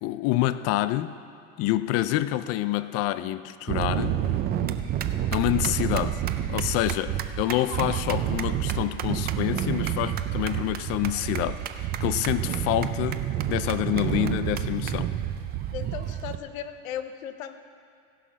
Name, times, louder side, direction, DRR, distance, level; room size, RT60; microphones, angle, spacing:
voice 1, 0.0-1.1 1.6-4.2 5.3-6.2 6.5-13.2 13.5-15.1, left 15 dB, 40° left, 13 dB, 0.4 m, -27 dB
sound 1, 3.7-16.4, right 11 dB, 25° right, 0.4 m, -29 dB
voice 2, 15.7-17.6, left 9 dB, 90° left, 9 dB, 0.8 m, -36 dB
16.5 x 5.7 x 6.2 m, 2.4 s
supercardioid pair, 130°, 39 cm